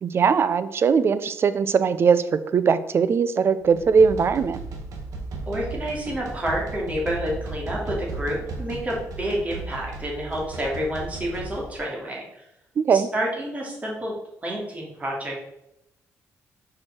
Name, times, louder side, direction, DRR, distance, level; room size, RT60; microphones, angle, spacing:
voice 1, 0.0-4.6 12.8-13.1, right 6 dB, 45° right, 14 dB, 0.5 m, -20 dB
sound 1, 3.6-11.8, right 3 dB, 80° right, 1.3 m, -35 dB
voice 2, 5.5-12.4 12.9-14.1 14.4-15.4, equal, 25° right, -3 dB, 2.6 m, -29 dB
6.3 x 4.8 x 4.3 m, 0.83 s
cardioid pair, 105°, 6 cm